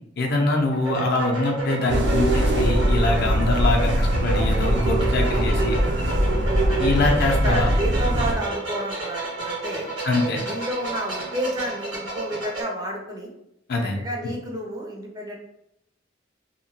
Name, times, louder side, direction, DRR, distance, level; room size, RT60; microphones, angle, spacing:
voice 1, 0.2-5.8 6.8-7.7 10.0-10.4 13.7-14.0, left 2 dB, 60° left, 1 dB, 0.5 m, -24 dB
sound 1, 0.7-12.6, right 3 dB, 85° right, 1.5 m, -32 dB
sound 2, 1.9-8.3, right 1 dB, 65° right, 0.6 m, -21 dB
voice 2, 7.4-9.9 10.4-13.3 14.0-15.4, right 1 dB, 20° right, 0 dB, 0.5 m, -30 dB
2.8 x 2.2 x 2.7 m, 0.80 s
head